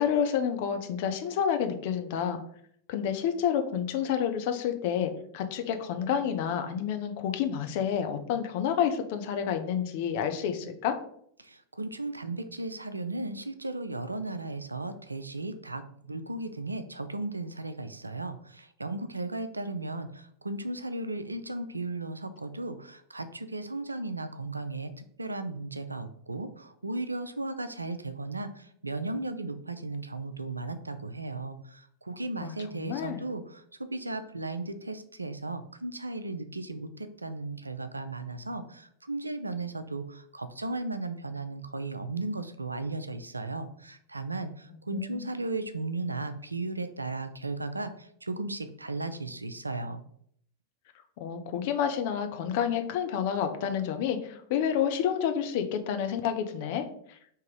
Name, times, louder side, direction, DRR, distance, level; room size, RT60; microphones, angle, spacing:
voice 1, 0.0-2.4 2.9-11.0 32.4-33.2 44.9-45.3 51.2-56.8, left 8 dB, 50° left, 6 dB, 0.6 m, -29 dB
voice 2, 11.4-50.0, right 2 dB, 80° right, 11 dB, 0.4 m, -36 dB
3.6 x 2.9 x 4.6 m, 0.66 s
figure-of-eight pair, 90°, 0 cm